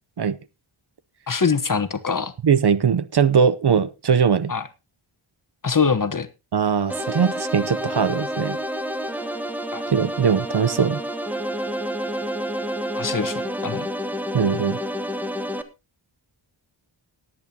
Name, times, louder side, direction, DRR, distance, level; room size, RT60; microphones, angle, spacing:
voice 1, 1.3-2.3 4.5-4.7 5.6-6.3 9.7-9.8 12.9-13.9, left 5 dB, 40° left, 11 dB, 1.1 m, -23 dB
voice 2, 2.4-4.5 6.5-8.6 9.9-11.0 14.3-14.8, right 6 dB, 55° right, 15 dB, 0.7 m, -20 dB
sound 1, 6.9-15.6, equal, 5° right, 1.2 m, -29 dB
19.5 x 8.7 x 2.9 m, 0.27 s
wide cardioid pair, 85°, 49 cm